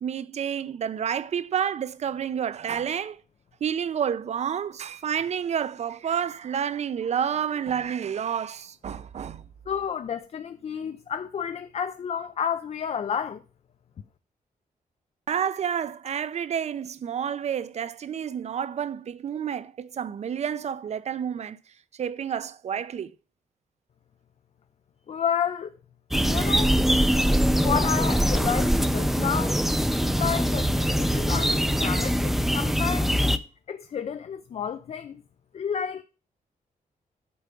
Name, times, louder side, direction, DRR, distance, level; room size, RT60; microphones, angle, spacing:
voice 1, 0.0-3.2 3.6-9.4 15.3-21.6 21.9-23.1, right 8 dB, 50° right, 0.5 m, -29 dB
voice 2, 9.7-13.4 25.1-25.7 26.2-26.8 27.6-29.6 30.1-33.1 33.7-35.2 35.5-36.0, left 7 dB, 45° left, 0.5 m, -30 dB
sound 1, 26.1-33.4, equal, ahead, 0.5 m, -23 dB
8.5 x 4.8 x 6.8 m
wide cardioid pair, 165°, 15 cm